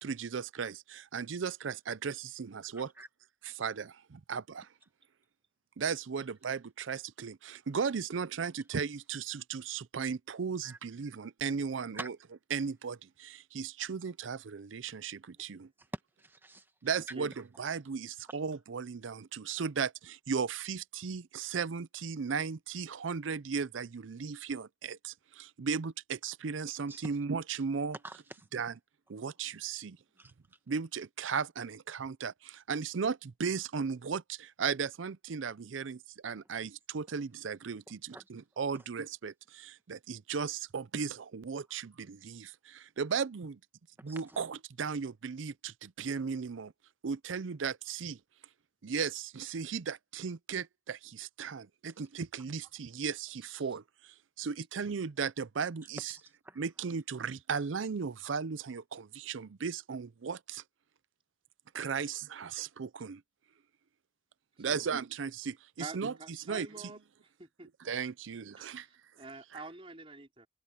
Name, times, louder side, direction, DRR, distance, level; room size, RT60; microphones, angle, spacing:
voice 1, 0.0-2.9 3.4-4.7 5.8-12.2 12.5-15.7 16.8-28.0 28.5-28.7 29.1-30.0 30.7-43.6 44.0-46.7 47.0-48.2 48.8-56.1 56.6-60.6 61.8-63.2 64.6-67.0 67.8-68.9 69.5-69.6, right 6 dB, 85° right, 0.5 m, -36 dB
voice 2, 2.7-3.1 10.6-10.8 11.9-12.1 16.2-16.6 26.9-27.1 28.0-28.5 30.2-30.3 38.1-38.2 44.1-44.2 56.1-56.6, right 2 dB, 10° right, 1.4 m, -46 dB
voice 3, 65.8-67.0 67.4-67.7 68.5-70.5, right 3 dB, 30° right, 4.4 m, -47 dB
open air
head